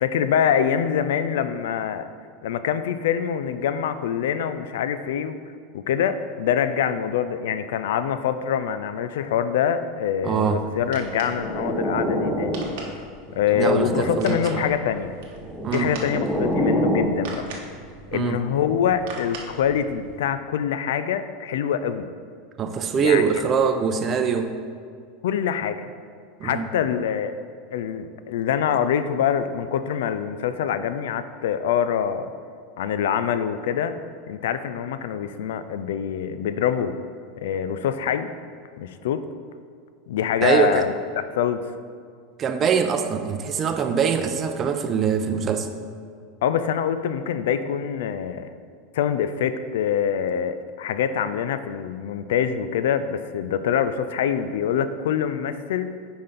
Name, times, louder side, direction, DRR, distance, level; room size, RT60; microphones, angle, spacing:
voice 1, 0.0-2.1 2.4-5.4 5.7-12.6 13.3-15.2 15.7-17.4 18.1-22.0 23.0-23.3 25.2-25.9 26.4-27.4 27.7-32.3 32.8-34.0 34.3-37.0 37.4-38.3 38.8-39.2 40.1-40.9 41.3-41.6 46.4-48.5 48.9-55.9, left 8 dB, 75° left, 11 dB, 0.3 m, -25 dB
voice 2, 10.2-10.6 13.5-14.6 15.6-15.9 18.1-18.4 22.6-24.5 26.4-26.7 40.4-40.9 42.4-45.7, right 6 dB, 35° right, 7 dB, 0.6 m, -23 dB
sound 1, 10.6-20.2, right 3 dB, 70° right, 1.1 m, -41 dB
sound 2, 11.1-12.9 13.3-14.4 15.3-17.2, equal, 5° left, 0.9 m, -27 dB
5.6 x 4.2 x 5.1 m, 2.1 s
hypercardioid pair, 105°, 0 cm